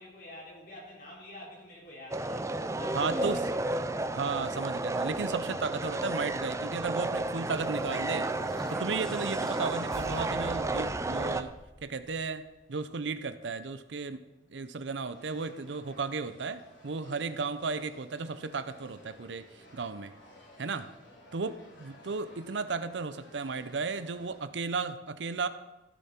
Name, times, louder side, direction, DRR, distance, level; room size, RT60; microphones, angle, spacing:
voice 1, 0.0-3.9 16.9-17.3 21.0-21.4, left 1 dB, 55° left, -4 dB, 4.3 m, -48 dB
sound 1, 2.1-11.4, right 2 dB, 15° right, 0.5 m, -32 dB
voice 2, 2.9-3.4 4.1-8.3 8.7-11.5 11.8-12.4 12.7-14.2 14.5-20.1 20.6-20.9 21.3-25.5, right 4 dB, 70° right, 12 dB, 0.6 m, -34 dB
sound 2, 7.1-12.4, equal, 5° left, 1.3 m, -44 dB
sound 3, 15.1-24.4, left 1 dB, 90° left, 3.0 m, -56 dB
15.0 x 7.0 x 4.4 m, 1.0 s
head